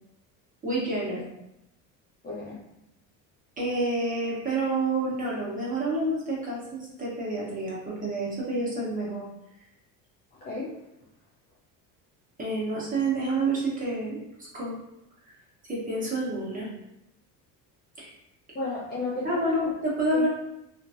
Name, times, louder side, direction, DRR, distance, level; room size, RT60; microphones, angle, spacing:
voice 1, 0.6-1.2 3.6-9.2 12.4-14.2 14.5-14.7 15.6-16.7 18.0-18.1 19.2-20.3, right 2 dB, 20° right, -6 dB, 1.1 m, -28 dB
voice 2, 2.2-2.6 10.3-10.7 18.5-19.7 20.1-20.3, left 3 dB, 25° left, -6 dB, 0.5 m, -33 dB
2.8 x 2.5 x 2.6 m, 0.85 s
cardioid pair, 130°, 36 cm